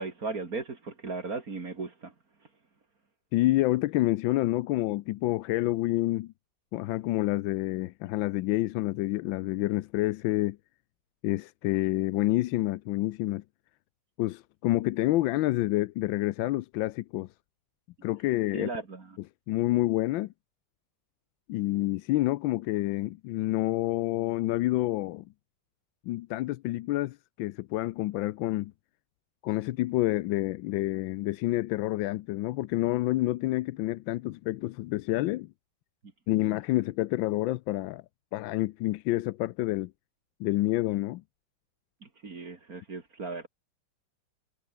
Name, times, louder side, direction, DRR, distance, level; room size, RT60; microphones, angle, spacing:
voice 1, 0.0-2.1 18.5-19.2 42.0-43.5, right 3 dB, 50° right, 2.9 m, -37 dB
voice 2, 3.3-6.3 6.7-10.6 11.2-13.4 14.2-17.3 18.0-18.7 19.5-20.3 21.5-25.2 26.1-28.7 29.4-35.5 36.3-38.0 38.3-39.9 40.4-41.2, left 17 dB, 85° left, 1.4 m, -28 dB
omnidirectional pair, 2.0 m